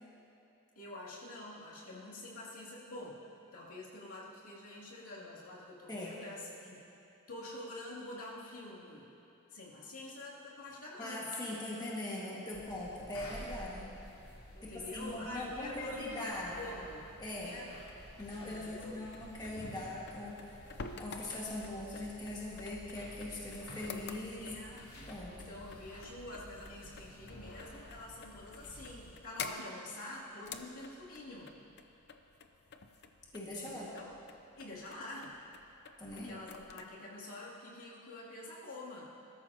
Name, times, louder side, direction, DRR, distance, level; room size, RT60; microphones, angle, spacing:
voice 1, 0.7-3.2 3.5-6.8 7.3-9.1 9.5-11.3 14.5-17.8 18.3-19.1 24.4-31.6 33.5-34.1 34.6-35.4 36.1-39.1, left 2 dB, 70° left, -6 dB, 2.7 m, -47 dB
voice 2, 11.0-13.9 14.6-16.6 17.2-17.6 18.2-20.7 21.0-24.6 25.1-25.3 33.3-33.9 36.0-36.4, left 1 dB, 20° left, -5 dB, 1.8 m, -41 dB
sound 1, 12.5-29.1, equal, 85° left, 3.0 m, -52 dB
sound 2, 17.8-36.8, left 5 dB, 50° left, 0.6 m, -51 dB
21.0 x 13.0 x 2.9 m, 2.8 s
head